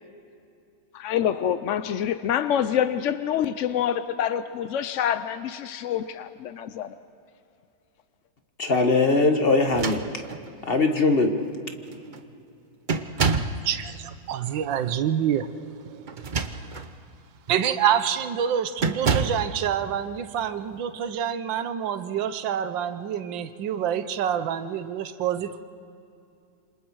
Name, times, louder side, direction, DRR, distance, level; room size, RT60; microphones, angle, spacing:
voice 1, 0.9-6.9, left 9 dB, 70° left, 11 dB, 0.7 m, -26 dB
voice 2, 8.6-10.0 10.7-11.4, left 3 dB, 35° left, 5 dB, 1.5 m, -20 dB
sound 1, 9.6-10.5 11.4-11.5 11.9-12.2 12.9-13.6 16.1-16.9 17.5-17.7 18.8-19.5, right 4 dB, 45° right, 0.6 m, -27 dB
voice 3, 13.6-16.3 17.5-25.6, right 9 dB, 85° right, 10 dB, 1.6 m, -27 dB
28.0 x 26.0 x 4.8 m, 2.6 s
omnidirectional pair, 2.0 m